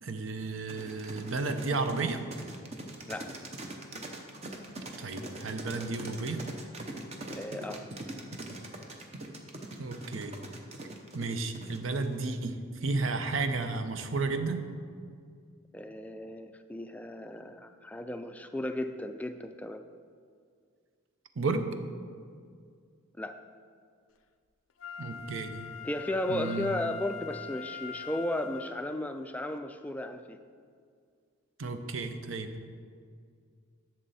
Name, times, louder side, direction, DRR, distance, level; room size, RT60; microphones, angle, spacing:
voice 1, 0.0-2.2 5.0-6.4 9.8-10.3 11.1-14.6 21.4-21.7 25.0-25.7 26.3-26.7 31.6-32.5, right 3 dB, 70° right, 8 dB, 0.7 m, -32 dB
sound 1, 0.7-12.1, right 2 dB, 30° right, 0.8 m, -42 dB
voice 2, 7.3-7.8 15.7-19.8 23.2-23.3 25.8-30.4, left 1 dB, 5° left, 7 dB, 0.3 m, -35 dB
Wind instrument woodwind instrument, 24.8-29.1 29.6-29.7, left 6 dB, 75° left, 0.4 m, -43 dB
11.0 x 6.8 x 4.1 m, 2.2 s
head